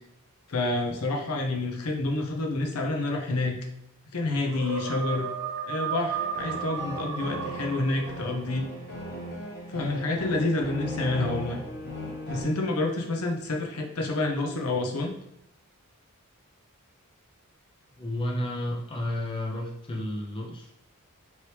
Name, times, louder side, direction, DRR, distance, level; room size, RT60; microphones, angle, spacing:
voice 1, 0.5-3.6 4.1-5.3 5.6-8.7 9.7-11.6 12.3-15.1, left 2 dB, 75° left, 2 dB, 0.7 m, -28 dB
sound 1, 4.5-8.6, right 7 dB, 75° right, 0.4 m, -34 dB
sound 2, 6.1-12.4, left 1 dB, 50° left, 0.9 m, -37 dB
voice 2, 17.9-20.8, left 1 dB, 25° left, -1 dB, 0.5 m, -32 dB
3.2 x 3.0 x 2.9 m, 0.79 s
head